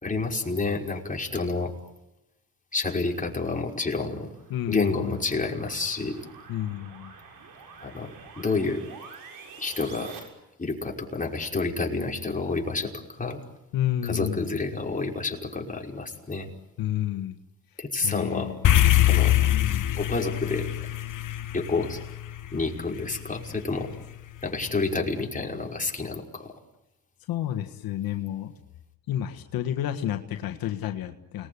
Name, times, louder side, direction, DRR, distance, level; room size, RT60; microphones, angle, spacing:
voice 1, 0.0-1.7 2.7-4.3 4.7-6.2 7.8-8.8 9.6-10.1 10.6-13.4 14.0-16.5 17.8-18.5 19.1-19.3 19.9-20.7 21.5-22.0 22.5-23.9 24.4-26.5, left 3 dB, 25° left, 0 dB, 5.6 m, -29 dB
sound 1, 3.7-10.2, right 5 dB, 80° right, 6.9 m, -47 dB
voice 2, 4.5-5.2 6.5-7.1 13.7-14.5 16.8-17.4 18.0-19.0 19.5-19.9 27.3-28.5 29.1-31.5, left 11 dB, 90° left, 5 dB, 1.7 m, -30 dB
sound 2, 18.6-23.2, left 13 dB, 60° left, 1.3 m, -23 dB
29.5 x 20.5 x 9.8 m, 0.91 s
cardioid pair, 75°, 34 cm